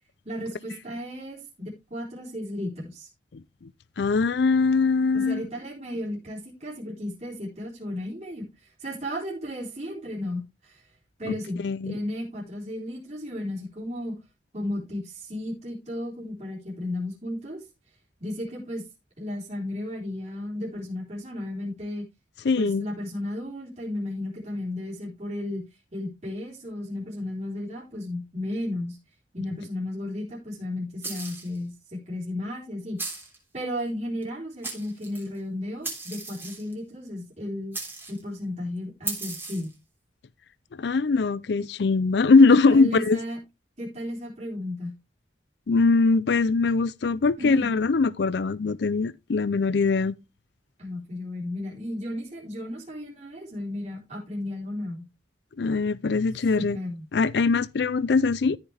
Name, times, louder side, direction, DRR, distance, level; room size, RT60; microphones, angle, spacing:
voice 1, 0.3-3.1 5.1-10.8 11.2-14.2 14.5-17.6 18.2-18.8 19.2-22.0 22.6-25.6 25.9-29.0 29.3-33.0 33.5-37.8 38.1-39.7 42.5-43.4 43.8-44.9 47.4-47.7 50.8-55.0 56.5-57.1, left 1 dB, 35° right, 3.7 m, -34 dB
voice 2, 4.0-5.4 11.3-12.0 22.4-22.9 40.8-43.2 45.7-50.1 55.6-56.8 57.1-58.6, left 4 dB, 60° left, 0.4 m, -22 dB
sound 1, 31.0-31.6 33.0-33.4 34.2-34.3 34.6-35.3 35.8-36.7 37.7-38.2 39.1-39.7, right 3 dB, 10° right, 3.2 m, -36 dB
14.0 x 5.9 x 3.3 m
head